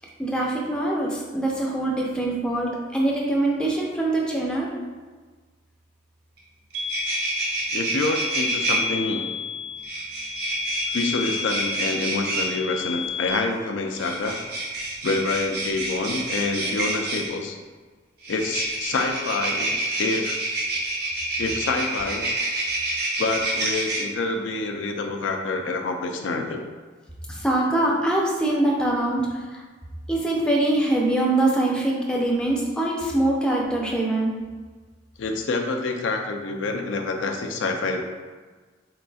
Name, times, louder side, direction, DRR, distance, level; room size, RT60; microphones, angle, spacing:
voice 1, 0.2-4.7 27.3-29.6 30.1-34.3, right 1 dB, 5° left, -3 dB, 0.5 m, -23 dB
sound 1, 6.4-6.5 6.7-8.8 9.8-12.5 13.9-17.3 18.2-24.0, right 2 dB, 50° right, 0.9 m, -28 dB
sound 2, 6.7-13.3, left 7 dB, 75° right, 0.4 m, -33 dB
voice 2, 7.7-9.3 10.9-14.4 15.0-17.6 18.3-20.4 21.4-22.3 23.2-26.6 35.2-38.0, left 3 dB, 75° left, 3 dB, 0.4 m, -27 dB
4.1 x 3.9 x 2.3 m, 1.4 s
head